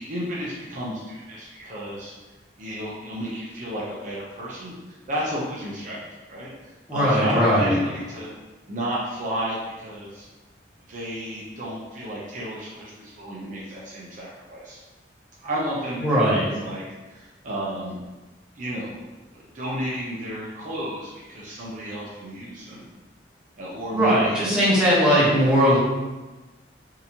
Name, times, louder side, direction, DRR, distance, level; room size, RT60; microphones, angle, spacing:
voice 1, 0.0-2.1 2.6-6.5 6.9-8.3 8.7-10.3 10.9-14.8 15.4-18.0 18.6-19.0 19.3-22.9 23.6-24.4, equal, 45° right, -6 dB, 0.6 m, -32 dB
voice 2, 6.9-7.7 16.0-16.4 23.9-25.8, equal, 5° right, -9 dB, 1.1 m, -19 dB
3.7 x 2.7 x 2.8 m, 1.2 s
head